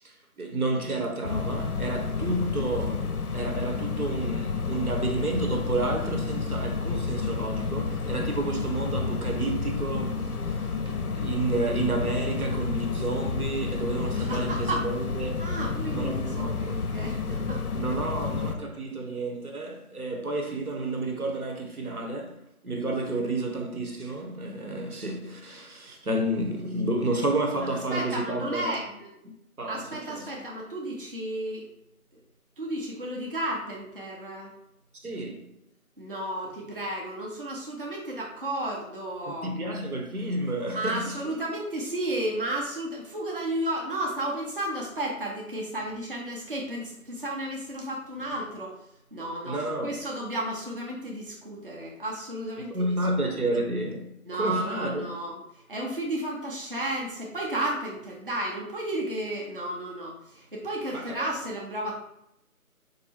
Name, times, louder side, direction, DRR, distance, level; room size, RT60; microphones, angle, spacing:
voice 1, 0.0-15.5 15.9-16.5 17.7-28.8 29.6-30.3 34.9-35.5 39.3-41.3 49.4-50.0 52.6-55.1 60.9-61.3, right 2 dB, 75° right, 1.1 m, -31 dB
sound 1, 1.2-18.5, left 4 dB, 85° left, 0.7 m, -30 dB
voice 2, 14.1-14.8 15.4-17.7 27.6-29.1 29.7-31.6 32.6-34.5 36.0-39.6 40.7-48.8 49.1-52.9 54.3-61.9, right 1 dB, 40° right, 0.6 m, -33 dB
4.0 x 2.7 x 4.2 m
figure-of-eight pair, 160°, 44 cm